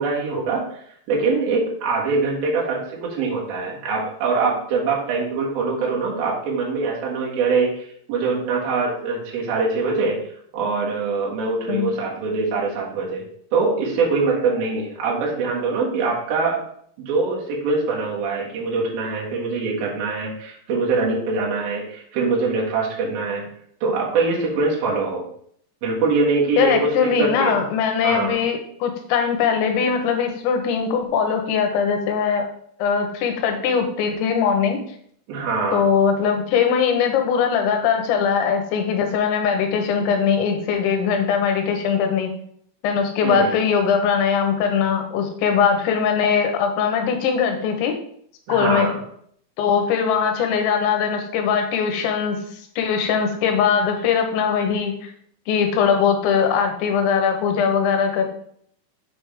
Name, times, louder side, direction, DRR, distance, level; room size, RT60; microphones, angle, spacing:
voice 1, 0.0-10.2 10.5-16.6 17.0-23.5 23.8-25.3 25.8-27.6 28.0-28.4 35.3-35.8 43.2-43.6 48.5-49.0, right 4 dB, 60° right, -4 dB, 3.3 m, -23 dB
voice 2, 26.6-32.5 32.8-34.8 35.7-42.3 42.8-47.9 48.5-48.9 49.6-52.4 52.8-54.9 55.5-58.3, left 6 dB, 80° left, 4 dB, 3.3 m, -21 dB
7.7 x 6.3 x 3.5 m, 0.64 s
omnidirectional pair, 5.3 m